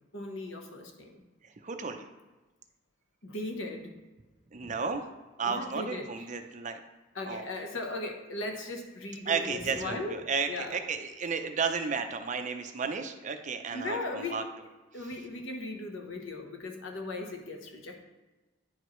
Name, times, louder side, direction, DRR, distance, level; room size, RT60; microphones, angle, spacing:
voice 1, 0.1-1.2 3.2-4.0 5.4-6.1 7.1-10.2 10.5-10.8 13.7-14.4 14.9-18.0, left 2 dB, 75° left, 3 dB, 1.0 m, -37 dB
voice 2, 1.6-2.1 4.5-5.0 5.4-6.8 7.2-7.4 9.3-14.4, right 5 dB, 40° right, 6 dB, 0.5 m, -33 dB
9.9 x 4.9 x 3.1 m, 1.2 s
head